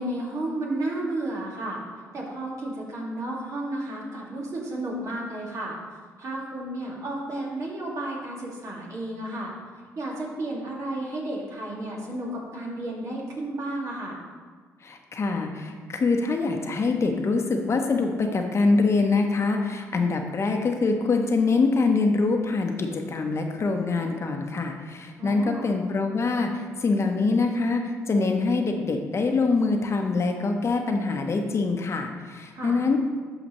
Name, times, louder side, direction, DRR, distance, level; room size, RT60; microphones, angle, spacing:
voice 1, 0.0-1.8 2.1-5.8 6.2-9.5 10.0-14.2 25.2-25.7 32.5-32.8, right 1 dB, 55° right, -3 dB, 2.2 m, -32 dB
voice 2, 14.8-33.0, left 3 dB, 45° left, 4 dB, 0.9 m, -24 dB
12.0 x 4.9 x 3.1 m, 1.6 s
supercardioid pair, 65°, 6 cm